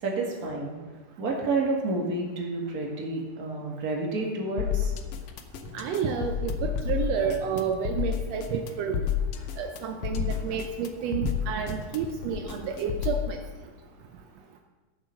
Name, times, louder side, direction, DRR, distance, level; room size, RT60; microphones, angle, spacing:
voice 1, 0.0-0.8 1.2-4.9, right 3 dB, 35° right, -1 dB, 1.8 m, -29 dB
sound 1, 4.6-13.3, left 9 dB, 80° left, 1.4 m, -31 dB
voice 2, 5.7-9.1 9.6-13.4, right 6 dB, 85° right, 4 dB, 1.4 m, -30 dB
13.0 x 7.2 x 5.7 m, 1.2 s
omnidirectional pair, 3.8 m